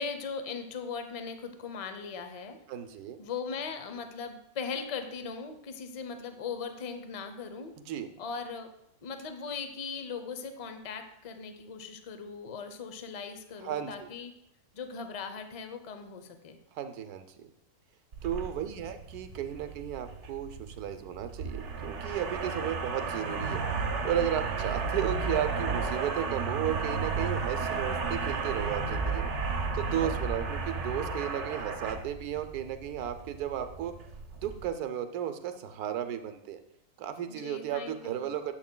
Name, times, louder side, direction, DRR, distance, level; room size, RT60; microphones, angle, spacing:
voice 1, 0.0-2.6 3.2-7.7 8.2-8.7 9.0-14.3 14.7-16.6 24.6-24.8 37.3-38.3, left 5 dB, 45° left, 7 dB, 0.4 m, -39 dB
voice 2, 2.7-3.2 7.9-8.1 13.6-14.1 16.7-17.3 18.2-23.6 24.0-29.3 29.7-33.9 34.4-36.6 37.0-38.5, right 10 dB, 90° right, 9 dB, 1.2 m, -34 dB
sound 1, 18.1-34.7, right 4 dB, 55° right, 1.0 m, -33 dB
10.5 x 7.7 x 2.2 m, 0.78 s
omnidirectional pair, 1.6 m